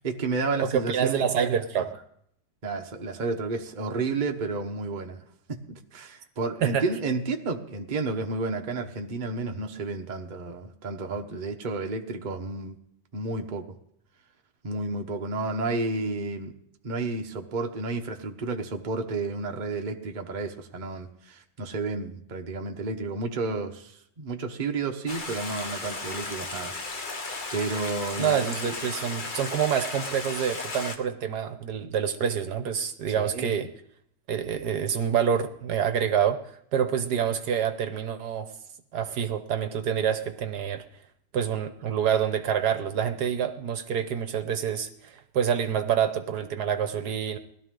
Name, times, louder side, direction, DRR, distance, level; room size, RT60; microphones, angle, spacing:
voice 1, 0.0-1.7 2.6-5.2 5.5-12.8 13.1-13.6 14.6-16.5 16.8-26.7 27.0-28.8 33.1-33.6, right 3 dB, 30° right, 3 dB, 1.1 m, -31 dB
voice 2, 0.6-2.0 6.6-6.8 28.2-33.7 34.3-38.5 38.9-40.8 41.3-47.4, right 8 dB, 70° right, 9 dB, 1.4 m, -27 dB
Stream, 25.1-31.0, left 3 dB, 30° left, 1.1 m, -35 dB
20.0 x 12.5 x 3.8 m, 0.70 s
omnidirectional pair, 1.9 m